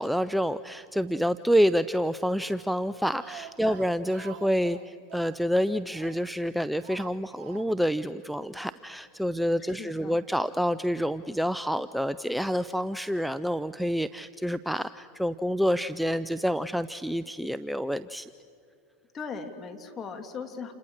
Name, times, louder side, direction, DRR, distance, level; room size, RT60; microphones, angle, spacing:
voice 1, 0.0-18.3, equal, ahead, 14 dB, 0.5 m, -28 dB
Speech, 2.9-6.4 6.8-8.0 8.2-8.3 8.6-8.7, right 14 dB, 60° right, 0.7 m, -47 dB
voice 2, 9.6-10.2 19.1-20.7, left 5 dB, 30° left, 5 dB, 3.2 m, -39 dB
30.0 x 28.5 x 6.6 m, 2.6 s
hypercardioid pair, 95°, 0 cm